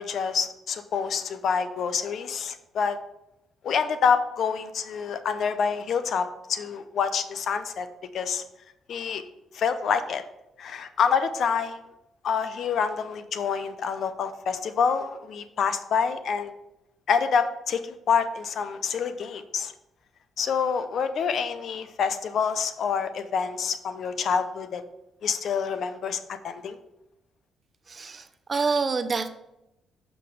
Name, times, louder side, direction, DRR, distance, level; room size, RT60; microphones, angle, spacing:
voice 1, 0.0-3.0 3.6-7.9 8.1-8.4 8.9-9.2 9.5-10.2 10.6-11.8 12.2-16.5 17.1-19.7 20.4-24.8 25.2-26.8, left 6 dB, 65° left, 11 dB, 0.6 m, -27 dB
voice 2, 27.9-29.3, right 4 dB, 35° right, 10 dB, 0.6 m, -27 dB
5.9 x 5.2 x 4.6 m, 0.90 s
cardioid pair, 90°, 0 cm